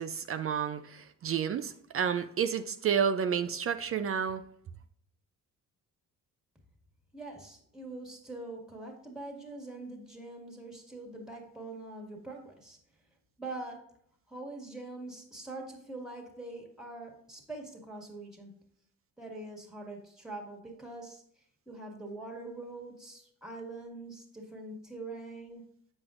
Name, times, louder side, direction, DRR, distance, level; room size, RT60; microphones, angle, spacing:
voice 1, 0.0-4.4, right 7 dB, 45° right, 0.4 m, -30 dB
voice 2, 7.1-12.8 13.4-13.8 14.3-18.6 19.2-21.2 21.7-25.6, right 2 dB, ahead, 1.8 m, -43 dB
7.5 x 6.1 x 2.5 m
cardioid pair, 95°, 33 cm